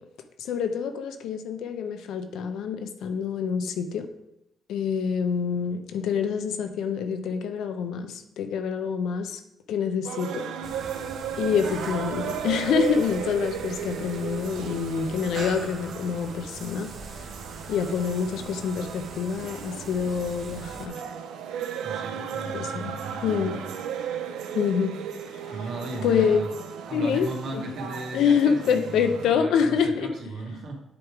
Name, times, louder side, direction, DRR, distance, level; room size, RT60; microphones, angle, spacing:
voice 1, 0.4-4.1 4.7-9.4 9.7-10.5 11.4-16.9 17.7-21.0 22.5-23.6 24.5-24.9 25.5-25.6 26.0-26.5 26.9-27.3 27.5-27.6 28.1-30.1, left 6 dB, 80° left, 8 dB, 0.8 m, -26 dB
sound 1, 10.0-29.3, right 8 dB, 85° right, 0.6 m, -35 dB
sound 2, 10.6-20.9, right 3 dB, 50° right, 1.1 m, -42 dB
voice 2, 21.8-23.7 25.5-26.5 26.9-30.8, right 2 dB, 70° right, 0 dB, 2.1 m, -36 dB
9.3 x 3.6 x 4.8 m, 0.85 s
cardioid pair, 90°, 0 cm